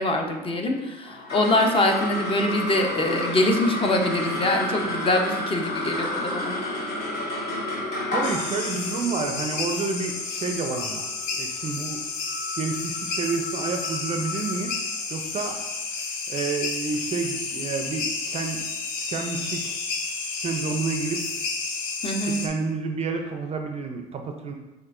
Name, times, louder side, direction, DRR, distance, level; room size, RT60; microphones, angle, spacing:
voice 1, 0.0-6.6 22.0-22.4, left 1 dB, 25° left, 3 dB, 0.6 m, -24 dB
sound 1, 1.0-11.6, left 1 dB, 50° left, 1.2 m, -31 dB
voice 2, 8.1-12.0 12.6-14.8 15.1-15.6 16.3-18.6 19.1-19.8 20.4-21.4 22.2-24.5, right 4 dB, 30° right, 4 dB, 0.4 m, -29 dB
sound 2, 8.2-22.5, left 4 dB, 75° left, 0.6 m, -31 dB
5.8 x 2.5 x 2.4 m, 1.0 s
hypercardioid pair, 75°, 20 cm